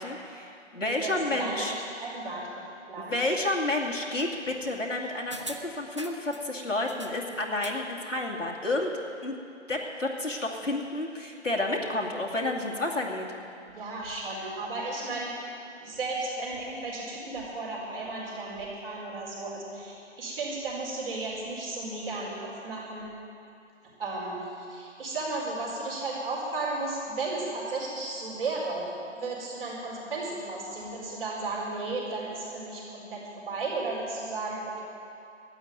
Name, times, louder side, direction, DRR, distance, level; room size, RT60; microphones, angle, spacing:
voice 1, 0.0-1.7 3.0-5.4 5.6-8.9 9.2-9.4 9.7-13.3, left 2 dB, 85° left, -2 dB, 2.5 m, -30 dB
voice 2, 1.0-2.4 2.9-3.3 13.7-15.3 15.7-23.1 24.0-34.8, right 2 dB, 50° right, -4 dB, 4.7 m, -34 dB
sound 1, 5.3-6.5 6.9-7.9 8.2-8.3, equal, 25° right, 0.4 m, -42 dB
13.0 x 9.2 x 9.3 m, 2.6 s
figure-of-eight pair, 145°, 37 cm